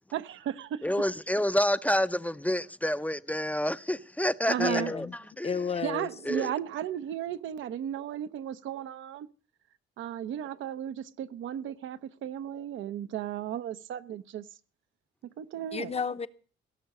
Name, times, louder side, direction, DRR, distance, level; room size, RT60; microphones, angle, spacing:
voice 1, 0.1-0.9 4.5-4.9 5.8-9.3 10.0-14.5 15.4-15.9, right 10 dB, 75° right, 0.8 m, -35 dB
voice 2, 0.8-5.1 5.4-5.5 6.3-6.5, equal, 5° left, 0.6 m, -28 dB
voice 3, 4.6-5.1 5.4-6.1 15.7-16.3, left 5 dB, 30° left, 0.8 m, -31 dB
17.0 x 6.5 x 8.3 m
cardioid pair, 90°, 20 cm